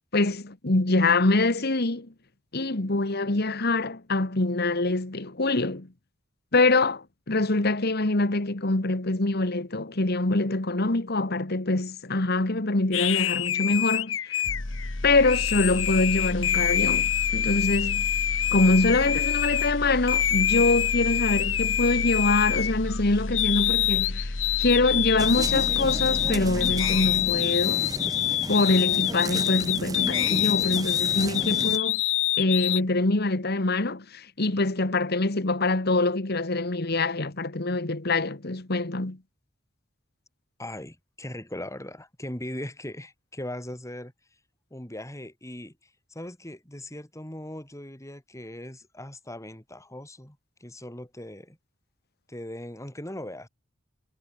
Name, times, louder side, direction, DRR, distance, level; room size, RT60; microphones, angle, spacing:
voice 1, 0.1-2.1 2.5-5.9 6.5-14.4 15.0-18.1 18.5-27.9 28.5-32.0 32.4-39.2, left 2 dB, 55° left, 1.8 m, -24 dB
sound 1, 12.9-19.7 20.1-23.0 23.3-32.8, left 13 dB, 85° left, 1.4 m, -26 dB
sound 2, 14.4-27.6 27.9-28.1, left 1 dB, 70° left, 1.6 m, -33 dB
sound 3, 25.2-31.8, right 2 dB, 20° right, 1.4 m, -34 dB
voice 2, 40.6-44.1 44.7-51.6 52.3-53.5, left 1 dB, 15° left, 5.7 m, -39 dB
head